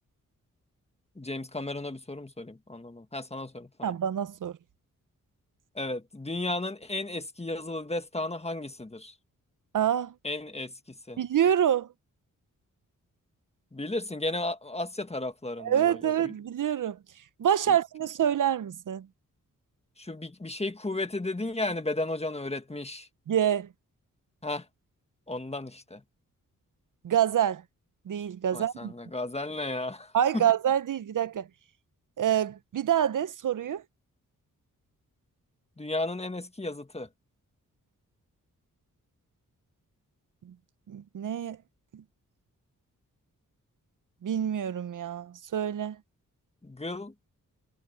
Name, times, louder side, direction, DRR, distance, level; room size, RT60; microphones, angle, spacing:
voice 1, 1.1-3.9 5.7-9.1 10.2-11.2 13.7-16.3 17.7-17.8 20.0-23.1 24.4-24.6 25.3-26.0 28.5-30.5 35.8-37.1 46.6-47.1, left 2 dB, 20° left, 1.7 m, -34 dB
voice 2, 3.8-4.5 9.7-10.1 11.2-11.9 15.6-17.0 17.4-19.1 23.3-23.7 27.0-27.6 28.1-28.9 30.1-31.5 32.2-33.8 40.9-41.6 44.2-46.0, right 10 dB, 70° right, 0.8 m, -26 dB
cardioid pair, 55°, 33 cm